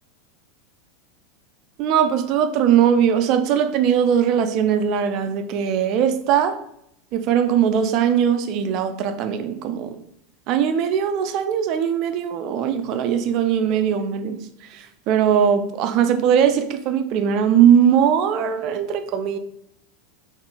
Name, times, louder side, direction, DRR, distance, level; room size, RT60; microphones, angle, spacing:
voice 1, 1.8-6.6 7.1-10.0 10.5-19.4, right 8 dB, 50° right, 0.3 m, -20 dB
3.6 x 2.4 x 2.2 m
hypercardioid pair, 85°, 0 cm